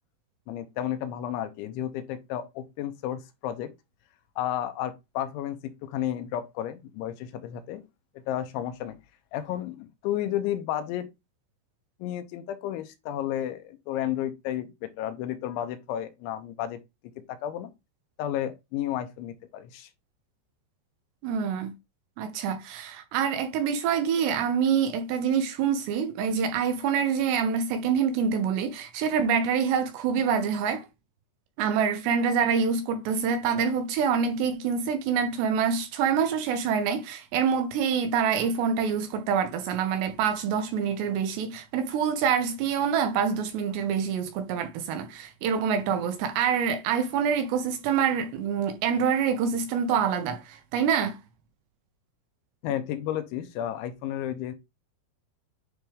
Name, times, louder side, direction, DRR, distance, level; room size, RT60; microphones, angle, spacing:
voice 1, 0.5-3.7 4.4-7.8 8.3-9.0 9.3-11.1 12.0-16.8 17.3-17.7 18.2-19.9 52.6-54.6, left 11 dB, 85° left, 3.1 m, -32 dB
voice 2, 21.2-21.7 22.2-30.8 31.6-51.2, right 7 dB, 80° right, 2.6 m, -26 dB
9.7 x 3.5 x 3.4 m
omnidirectional pair, 5.4 m